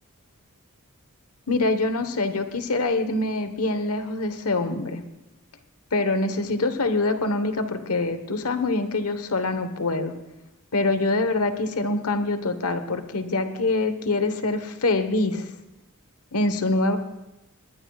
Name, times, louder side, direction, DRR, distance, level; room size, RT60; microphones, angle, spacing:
voice 1, 1.5-5.0 5.9-10.1 10.7-15.5 16.3-17.0, left 2 dB, 80° left, 9 dB, 1.2 m, -25 dB
21.0 x 18.5 x 2.4 m, 1.0 s
head